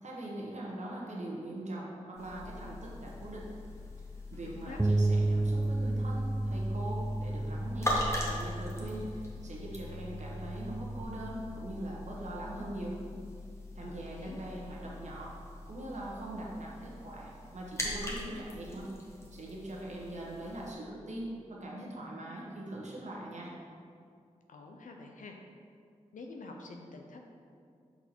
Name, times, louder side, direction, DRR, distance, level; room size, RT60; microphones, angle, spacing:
voice 1, 0.0-3.5 4.3-13.0 13.7-15.3 15.6-18.9 19.3-23.5, right 1 dB, 65° right, -3 dB, 1.1 m, -41 dB
sound 1, 2.2-20.7, left 1 dB, 20° left, 1.3 m, -41 dB
voice 2, 4.4-4.8 13.8-14.4 24.5-25.4 26.1-27.2, left 3 dB, 85° left, 2 dB, 0.5 m, -47 dB
Bass guitar, 4.8-11.0, right 2 dB, 10° right, 0.3 m, -32 dB
5.8 x 4.1 x 4.4 m, 2.3 s
cardioid pair, 50°, 13 cm